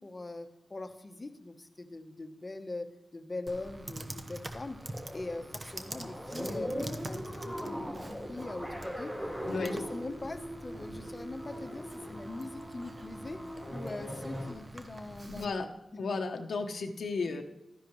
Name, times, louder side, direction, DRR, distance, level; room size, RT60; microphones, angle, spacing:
voice 1, 0.0-4.8 5.1-15.7 17.2-17.4, left 2 dB, 30° left, 7 dB, 0.9 m, -42 dB
Computer keyboard, 3.5-15.4, right 1 dB, 30° right, 0.9 m, -45 dB
sound 1, 4.8-14.5, equal, 15° right, 3.9 m, -40 dB
voice 2, 15.3-15.6 16.0-17.4, left 4 dB, 80° left, 4 dB, 0.9 m, -33 dB
12.5 x 10.5 x 3.1 m, 0.92 s
wide cardioid pair, 100°, 0 cm